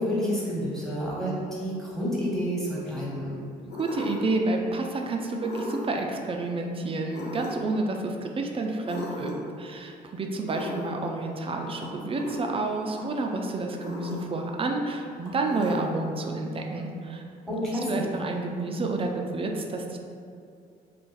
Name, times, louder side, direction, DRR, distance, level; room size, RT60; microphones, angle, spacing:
voice 1, 0.0-3.4 17.5-18.1, equal, ahead, -7 dB, 1.2 m, -29 dB
Loud bunny rabbit snoring, 3.7-4.4 5.4-6.0 7.1-7.7 8.8-9.5 10.5-11.1 12.1-12.5 13.8-14.4 15.4-16.1, left 2 dB, 65° left, 0.7 m, -37 dB
voice 2, 3.8-17.2 17.5-17.6 17.9-20.0, right 2 dB, 30° right, 2 dB, 0.4 m, -29 dB
sound 1, 11.8-11.9 13.0-13.1 14.1-14.2 15.2-15.4, equal, 20° left, 1.0 m, -46 dB
2.5 x 2.4 x 3.9 m, 2.4 s
supercardioid pair, 70°, 18 cm